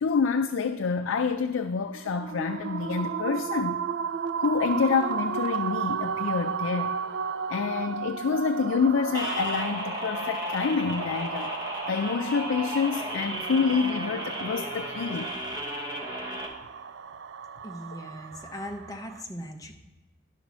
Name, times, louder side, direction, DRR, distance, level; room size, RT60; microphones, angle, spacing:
voice 1, 0.0-3.8 4.4-7.0 7.5-11.5 11.9-15.3, left 5 dB, 70° left, 7 dB, 0.4 m, -27 dB
sound 1, 1.9-19.2, right 6 dB, 60° right, 0.4 m, -34 dB
sound 2, 9.1-16.5, equal, 20° right, 1.1 m, -34 dB
voice 2, 17.6-19.8, equal, 15° left, 3 dB, 0.8 m, -39 dB
11.0 x 4.1 x 6.1 m, 1.2 s
head